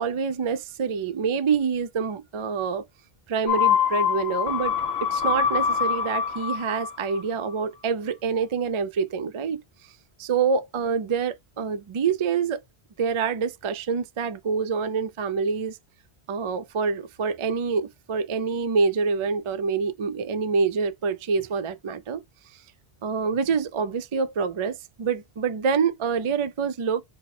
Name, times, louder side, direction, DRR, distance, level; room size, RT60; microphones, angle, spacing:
voice 1, 0.0-2.8 3.3-4.7 5.0-9.6 10.2-12.6 13.0-15.8 16.3-22.2 23.0-27.0, right 5 dB, 55° right, 0.3 m, -26 dB
sound 1, 3.5-7.2 7.5-7.6, left 7 dB, 75° left, 1.2 m, -25 dB
4.4 x 2.2 x 4.1 m
omnidirectional pair, 1.1 m